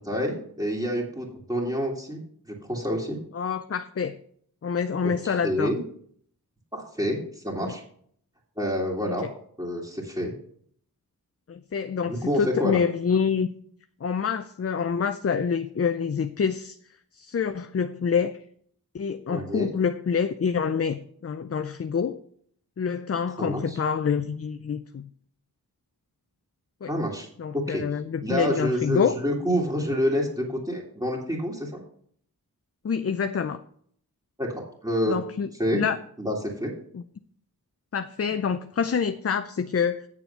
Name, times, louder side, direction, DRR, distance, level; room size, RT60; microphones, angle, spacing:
voice 1, 0.0-2.2 2.5-3.2 5.2-5.8 6.7-7.8 8.6-9.2 9.6-10.3 12.1-12.8 19.3-19.7 23.4-23.8 26.9-27.3 27.5-27.8 28.2-31.8 34.4-35.2 35.6-35.8 36.2-36.7, equal, 10° right, 2.3 m, -28 dB
voice 2, 3.3-4.1 4.6-5.7 7.6-7.8 9.1-9.2 11.5-13.5 14.0-16.8 17.1-18.4 18.9-22.2 22.8-25.1 26.8-26.9 27.4-29.1 32.8-33.6 35.1-36.0 36.9-37.0 37.9-40.1, left 6 dB, 40° left, 0.5 m, -27 dB
8.5 x 6.9 x 5.6 m
cardioid pair, 45°, 37 cm